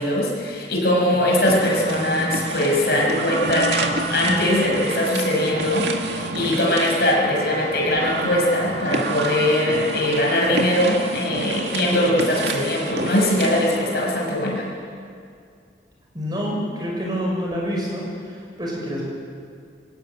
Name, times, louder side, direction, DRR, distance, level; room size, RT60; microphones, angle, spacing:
voice 1, 0.0-14.7, left 1 dB, 60° left, -2 dB, 6.7 m, -21 dB
Telephone, 1.4-2.4 2.8-3.1 3.4-9.5, equal, 50° right, 6.3 m, -34 dB
sound 1, 1.5-14.0, right 3 dB, 80° right, 2.0 m, -29 dB
voice 2, 16.1-19.0, equal, 25° right, -2 dB, 6.2 m, -27 dB
25.0 x 16.5 x 9.3 m, 2.3 s
head